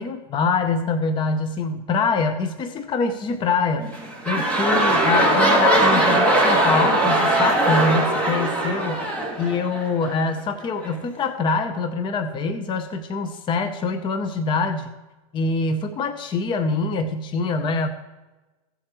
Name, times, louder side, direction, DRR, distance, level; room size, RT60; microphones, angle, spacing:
voice 1, 0.0-3.9 4.3-9.0 9.4-14.9 15.3-17.9, left 4 dB, 25° left, 9 dB, 0.7 m, -24 dB
sound 1, 3.8-10.2 10.8-10.9, right 1 dB, 5° left, 2.4 m, -20 dB
16.0 x 7.5 x 3.0 m, 1.1 s
supercardioid pair, 130°, 20 cm